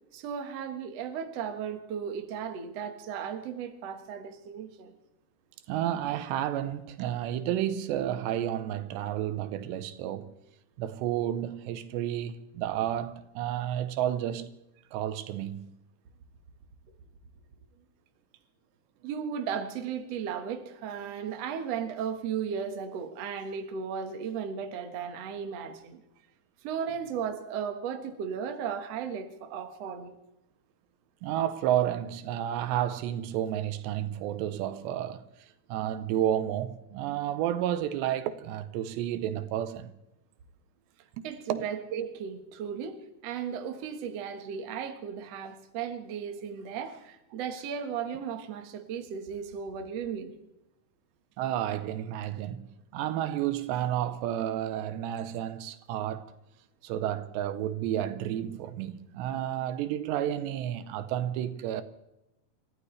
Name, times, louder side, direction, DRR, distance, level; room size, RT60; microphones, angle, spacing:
voice 1, 0.1-4.9 19.0-26.0 26.6-30.2 41.2-43.0 43.2-50.3, right 7 dB, 55° right, 1.9 m, -35 dB
voice 2, 5.7-10.3 10.8-14.5 14.9-15.7 31.2-35.3 35.7-39.9 41.2-41.3 41.5-41.7 51.4-56.3 56.8-61.8, right 11 dB, 85° right, 3.1 m, -31 dB
29.5 x 14.5 x 3.3 m
omnidirectional pair, 4.9 m